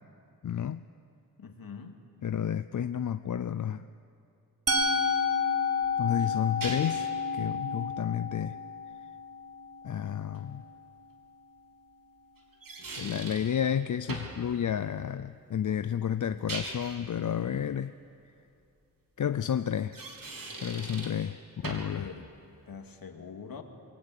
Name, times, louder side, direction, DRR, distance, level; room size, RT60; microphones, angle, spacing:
voice 1, 0.4-0.9 2.2-3.9 6.0-8.6 9.8-10.6 13.0-17.9 19.2-20.0 20.6-22.1, left 9 dB, 55° left, 0.6 m, -31 dB
voice 2, 1.4-2.0 21.9-22.3 22.7-23.6, left 6 dB, 75° left, 2.3 m, -44 dB
Musical instrument, 4.7-10.6, left 4 dB, 40° right, 1.9 m, -31 dB
sound 1, 5.8-7.1 10.3-10.4 12.4-13.6 14.1-14.4 16.3-17.0 19.8-21.3 21.6-22.0, right 3 dB, 65° right, 3.9 m, -40 dB
26.0 x 23.5 x 9.1 m
wide cardioid pair, 160°, 36 cm